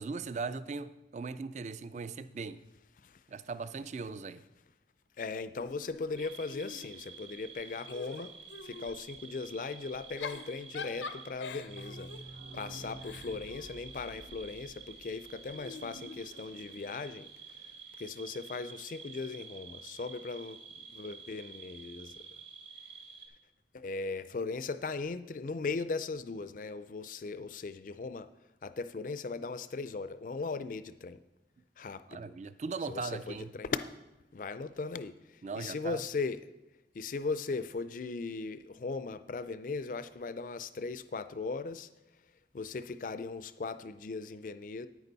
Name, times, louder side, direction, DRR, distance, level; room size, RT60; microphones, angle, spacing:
voice 1, 0.0-2.6 3.3-4.4 32.1-33.5 35.4-36.0, right 4 dB, 40° right, 15 dB, 0.3 m, -39 dB
voice 2, 5.2-8.3 8.6-12.1 12.6-17.3 17.6-20.6 20.9-22.1 23.7-28.3 28.6-31.2 31.8-32.3 32.9-33.9 34.3-36.4 36.9-41.9 42.5-44.9, left 4 dB, 45° left, 13 dB, 0.4 m, -38 dB
Giggle / Chuckle chortle, 5.6-7.2 7.6-9.0 10.0-14.4 15.5-16.9, left 4 dB, 85° left, 0.6 m, -46 dB
sound 1, 6.2-23.3, right 6 dB, 80° right, 1.6 m, -50 dB
sound 2, 11.0-16.5 16.8-16.9 17.1-17.2 17.5-17.6, right 1 dB, 65° right, 0.7 m, -51 dB
9.8 x 9.3 x 4.0 m, 0.97 s
head